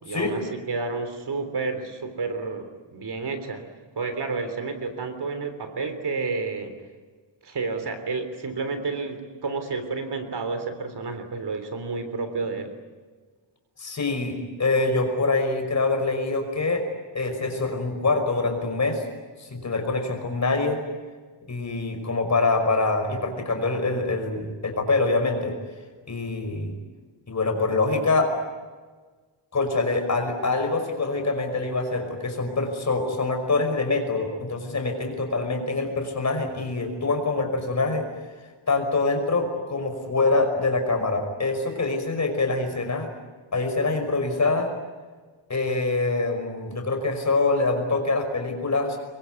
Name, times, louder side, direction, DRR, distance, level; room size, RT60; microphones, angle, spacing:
voice 1, 0.0-3.7 4.0-6.8 7.4-12.8, right 4 dB, 55° right, 8 dB, 3.4 m, -30 dB
voice 2, 13.8-16.9 17.1-19.0 19.4-20.8 21.5-25.6 26.1-26.7 27.3-28.3 29.5-38.1 38.7-43.1 43.5-44.7 45.5-49.0, left 3 dB, 35° left, 5 dB, 5.5 m, -25 dB
26.5 x 23.0 x 9.4 m, 1.4 s
wide cardioid pair, 160°, 48 cm